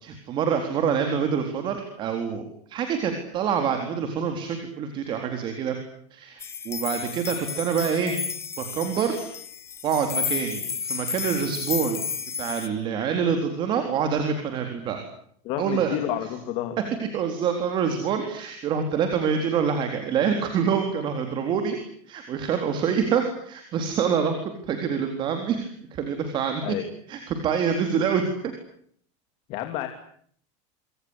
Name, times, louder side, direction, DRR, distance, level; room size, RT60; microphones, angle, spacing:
voice 1, 0.0-5.8 6.1-8.2 8.6-9.3 9.8-12.0 12.4-15.0 15.6-16.0 17.1-21.8 22.1-26.8 27.1-28.2, right 7 dB, 30° right, 5 dB, 4.0 m, -26 dB
sound 1, 6.4-12.7, left 6 dB, 15° left, 1.7 m, -32 dB
voice 2, 15.4-16.8 26.6-26.8 29.5-29.9, left 12 dB, 40° left, 6 dB, 3.0 m, -29 dB
26.0 x 25.5 x 8.3 m, 0.62 s
supercardioid pair, 175°, 16 cm